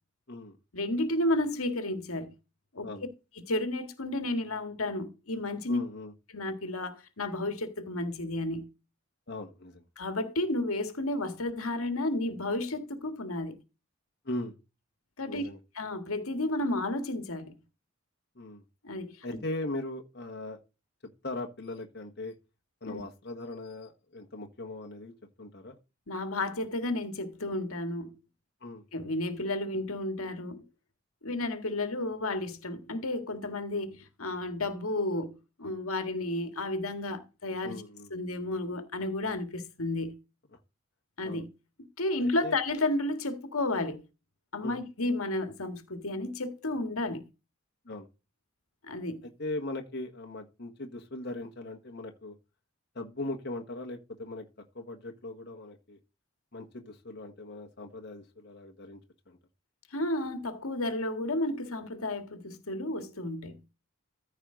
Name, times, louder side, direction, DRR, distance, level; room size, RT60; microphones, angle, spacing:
voice 1, 0.7-2.3 2.7-2.9 3.4-5.8 6.3-8.7 10.0-13.6 15.2-15.4 15.7-17.5 18.8-19.2 22.9-23.0 26.1-28.2 28.9-30.6 31.2-37.8 38.1-40.2 41.2-41.5 42.0-44.0 44.5-47.3 48.8-49.3 59.9-63.6, left 2 dB, 80° left, 1.8 m, -32 dB
voice 2, 5.7-6.1 9.3-9.8 14.2-14.5 15.3-15.6 18.3-18.6 19.2-20.6 21.2-22.3 22.8-25.8 28.6-28.8 37.6-38.1 40.5-40.6 41.2-41.4 42.2-42.6 44.6-44.8 47.8-48.1 49.4-52.3 52.9-54.5 54.7-56.0 56.5-59.0 59.3-59.4, left 2 dB, 50° left, 1.5 m, -39 dB
14.5 x 4.9 x 3.8 m
head